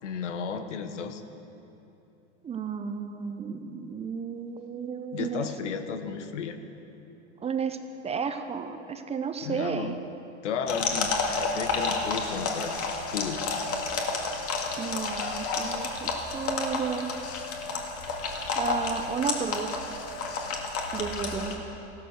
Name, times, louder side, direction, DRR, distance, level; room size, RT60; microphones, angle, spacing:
voice 1, 0.0-1.2 5.1-6.6 9.4-10.0 10.4-12.8 13.1-13.4, left 6 dB, 90° left, 8 dB, 1.3 m, -33 dB
voice 2, 2.4-5.5 7.4-7.8 8.0-10.0 14.8-17.1 18.6-19.8 20.9-21.6, right 6 dB, 20° right, 8 dB, 0.7 m, -33 dB
sound 1, 10.7-21.5, left 4 dB, 40° left, 2.1 m, -31 dB
15.0 x 12.5 x 6.6 m, 2.9 s
supercardioid pair, 125°, 35 cm